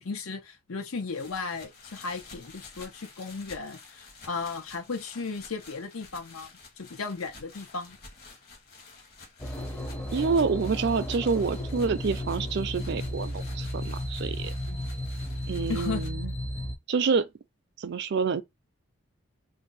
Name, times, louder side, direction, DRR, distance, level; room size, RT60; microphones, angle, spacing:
voice 1, 0.0-6.5 6.8-8.0 14.7-14.8 15.7-16.0, left 4 dB, 85° left, 0.8 m, -35 dB
sound 1, 1.1-16.1, left 4 dB, 45° left, 1.1 m, -51 dB
sound 2, 9.4-16.7, left 1 dB, 10° left, 0.5 m, -34 dB
voice 2, 10.1-14.5 15.5-16.3 16.9-17.3 17.8-18.4, right 5 dB, 55° right, 0.4 m, -27 dB
2.6 x 2.2 x 3.9 m
head